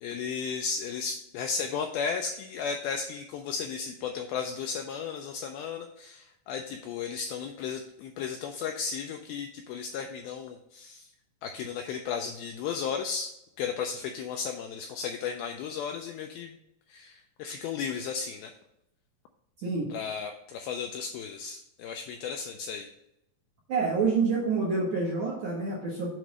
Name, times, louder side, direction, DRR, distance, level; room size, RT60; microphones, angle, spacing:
voice 1, 0.0-11.1 11.4-13.3 13.6-16.6 16.9-18.5 19.9-22.9, left 6 dB, 85° left, 4 dB, 2.1 m, -34 dB
voice 2, 23.7-26.1, right 4 dB, 65° right, -4 dB, 1.7 m, -27 dB
7.7 x 3.0 x 6.2 m, 0.83 s
omnidirectional pair, 4.8 m